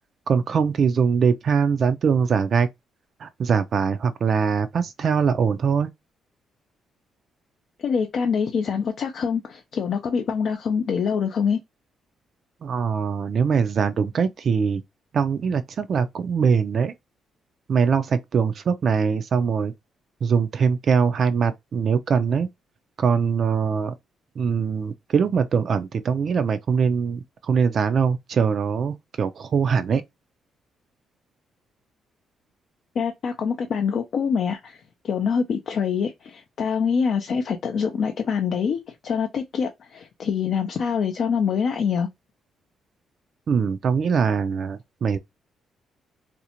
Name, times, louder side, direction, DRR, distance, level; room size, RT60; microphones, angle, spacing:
voice 1, 0.3-2.7 3.2-5.9 12.6-14.8 15.1-16.9 17.7-19.7 20.2-22.5 23.0-23.9 24.4-30.0 43.5-45.2, right 6 dB, 55° right, 0.3 m, -22 dB
voice 2, 7.8-11.6 33.0-34.8 35.0-42.1, left 6 dB, 60° left, 0.4 m, -25 dB
2.5 x 2.1 x 2.8 m
cardioid pair, 90°, 0 cm